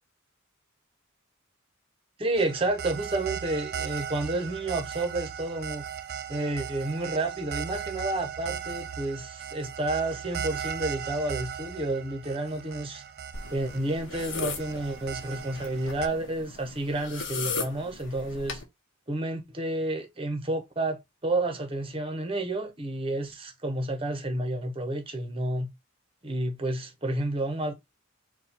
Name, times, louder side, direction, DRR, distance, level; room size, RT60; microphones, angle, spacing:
voice 1, 2.2-5.8 6.3-13.0 13.5-18.6 19.1-25.7 26.2-27.7, right 2 dB, 25° right, 0.8 m, -30 dB
sound 1, 2.4-16.1, right 8 dB, 50° right, 0.4 m, -37 dB
sound 2, 13.3-18.6, left 4 dB, 60° left, 0.9 m, -37 dB
4.2 x 2.3 x 4.3 m
head